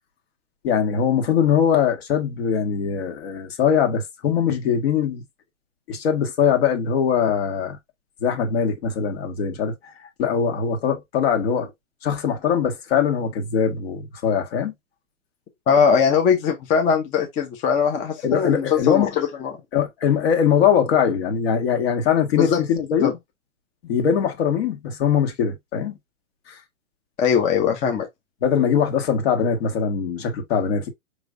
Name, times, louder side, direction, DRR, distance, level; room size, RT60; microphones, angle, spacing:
voice 1, 0.6-5.2 5.9-7.8 8.2-9.9 10.2-11.7 12.0-14.7 18.2-19.2 19.7-23.1 23.8-26.0 26.5-26.6 28.4-30.9, left 7 dB, 50° left, 1.7 m, -21 dB
voice 2, 15.7-19.5 22.3-22.6 23.0-23.1 27.2-28.1, left 7 dB, 20° left, 0.7 m, -20 dB
5.1 x 3.1 x 2.6 m
hypercardioid pair, 130°, 39 cm